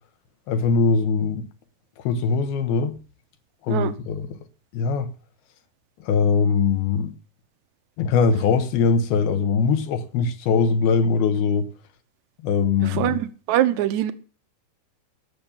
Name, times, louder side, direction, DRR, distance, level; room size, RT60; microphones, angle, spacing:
voice 1, 0.5-1.5 2.0-3.0 3.6-4.3 4.7-5.1 6.0-7.1 8.0-11.7 12.4-13.2, left 5 dB, 80° left, 3.2 m, -21 dB
voice 2, 12.8-14.1, right 12 dB, 70° right, 1.8 m, -23 dB
17.5 x 7.2 x 7.2 m
omnidirectional pair, 4.5 m